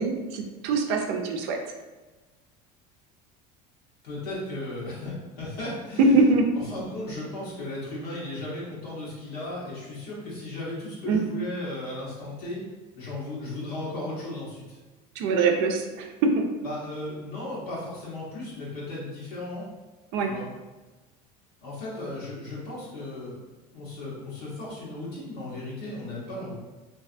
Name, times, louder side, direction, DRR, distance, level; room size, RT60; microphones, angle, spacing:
voice 1, 0.0-1.6 6.0-6.5 11.1-11.2 15.2-16.5 20.1-20.3, right 3 dB, 65° right, 4 dB, 0.4 m, -23 dB
voice 2, 4.0-6.3 6.7-12.6 12.9-14.8 16.6-19.7 20.2-20.5 21.6-23.4 23.7-26.5, left 2 dB, 90° left, -7 dB, 0.9 m, -35 dB
2.3 x 2.3 x 2.4 m, 1.2 s
supercardioid pair, 95°, 19 cm